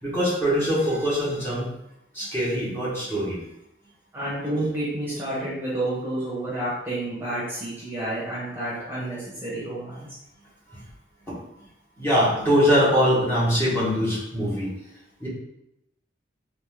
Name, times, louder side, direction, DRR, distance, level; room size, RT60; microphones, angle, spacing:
voice 1, 0.0-1.7 2.1-3.4 10.7-10.8 12.0-14.7 15.2-15.3, equal, 15° left, -9 dB, 1.6 m, -22 dB
voice 2, 4.1-10.1, right 1 dB, 10° right, -9 dB, 1.2 m, -30 dB
4.1 x 2.7 x 3.5 m, 0.84 s
head